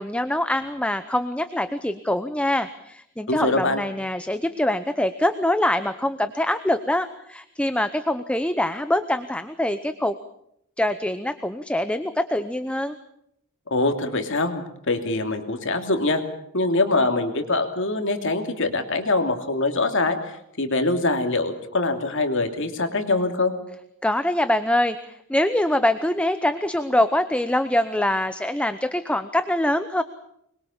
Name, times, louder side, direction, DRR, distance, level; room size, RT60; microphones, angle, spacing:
voice 1, 0.0-10.2 10.8-13.0 24.0-30.0, left 1 dB, 5° left, 10 dB, 0.8 m, -24 dB
voice 2, 3.3-3.8 13.7-16.2 16.5-23.5, left 2 dB, 60° left, 5 dB, 2.9 m, -24 dB
25.0 x 22.0 x 7.2 m, 0.75 s
head